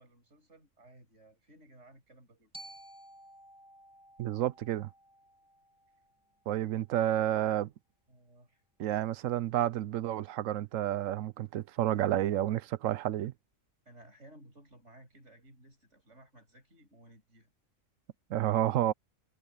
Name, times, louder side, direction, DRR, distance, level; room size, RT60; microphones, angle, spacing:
voice 1, 0.0-2.5 8.1-8.6 13.8-17.5 18.5-18.8, right 1 dB, 65° right, 6.9 m, -57 dB
Glockenspiel, 2.5-6.7, right 1 dB, 5° right, 1.6 m, -54 dB
voice 2, 4.2-4.9 6.5-7.7 8.8-13.3 18.3-18.9, right 12 dB, 85° right, 1.0 m, -30 dB
omnidirectional pair, 1.3 m